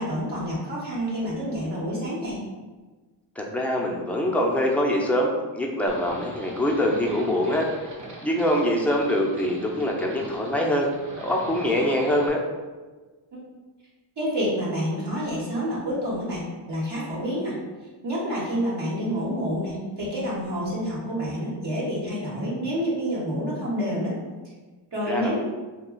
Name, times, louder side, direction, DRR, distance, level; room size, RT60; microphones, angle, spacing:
voice 1, 0.0-2.4 14.2-17.6 18.0-24.2 24.9-25.4, equal, 60° right, -6 dB, 1.1 m, -28 dB
voice 2, 3.4-7.7 8.2-10.9 11.2-12.4 25.1-25.4, left 1 dB, 5° left, -2 dB, 0.5 m, -24 dB
Livestock farm animals working animals, 5.9-12.3, right 1 dB, 40° right, 0.8 m, -40 dB
2.3 x 2.2 x 3.7 m, 1.3 s
cardioid pair, 60°, 46 cm